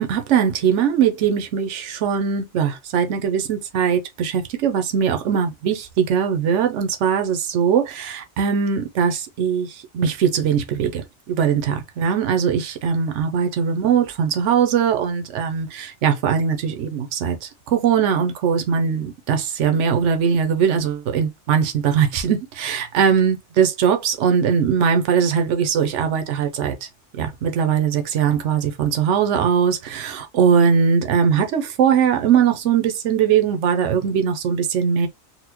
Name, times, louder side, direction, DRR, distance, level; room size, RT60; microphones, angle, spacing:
voice 1, 0.0-11.0 11.3-26.7 27.2-35.1, right 7 dB, 85° right, 1.0 m, -20 dB
4.1 x 2.1 x 2.8 m
omnidirectional pair, 1.2 m